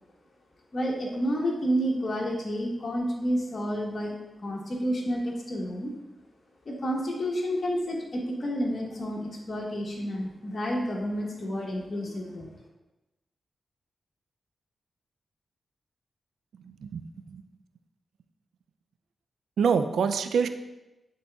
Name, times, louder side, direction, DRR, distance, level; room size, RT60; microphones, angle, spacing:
voice 1, 0.7-4.2 4.4-5.9 6.6-12.5, equal, 50° left, -2 dB, 1.1 m, -30 dB
voice 2, 16.5-17.5 19.6-20.5, right 6 dB, 85° right, 10 dB, 0.3 m, -26 dB
10.0 x 4.0 x 2.3 m, 1.0 s
cardioid pair, 45°, 0 cm